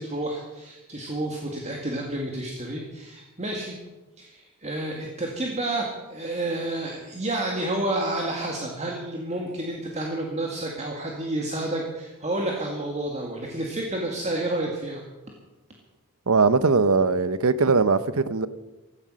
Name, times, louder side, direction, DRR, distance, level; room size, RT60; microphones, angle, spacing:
voice 1, 0.0-3.8 4.2-15.0, right 1 dB, 30° right, 2.0 m, -30 dB
voice 2, 16.3-18.5, right 4 dB, 70° right, 0.8 m, -20 dB
16.0 x 13.5 x 6.3 m
head